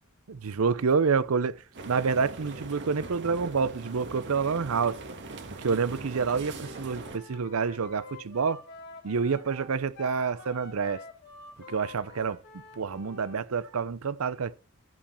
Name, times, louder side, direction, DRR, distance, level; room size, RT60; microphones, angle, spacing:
voice 1, 0.3-5.0 5.6-8.6 9.0-11.0 11.7-14.6, right 5 dB, 80° right, 0.6 m, -28 dB
sound 1, 1.7-7.2, right 2 dB, 55° right, 1.6 m, -41 dB
Wind instrument woodwind instrument, 6.6-13.4, left 3 dB, 55° left, 2.6 m, -48 dB
14.0 x 5.0 x 4.3 m
head